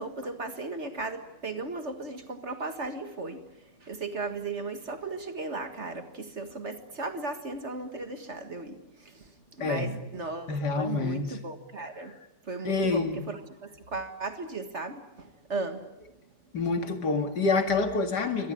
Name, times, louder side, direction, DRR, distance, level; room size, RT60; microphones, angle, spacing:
voice 1, 0.0-3.5 3.8-12.2 12.4-15.9, right 3 dB, 40° right, 8 dB, 1.9 m, -36 dB
voice 2, 9.6-9.9 10.5-11.4 12.6-13.2 16.5-18.5, left 3 dB, 70° left, 7 dB, 2.6 m, -27 dB
25.0 x 18.0 x 10.0 m, 0.92 s
omnidirectional pair, 1.9 m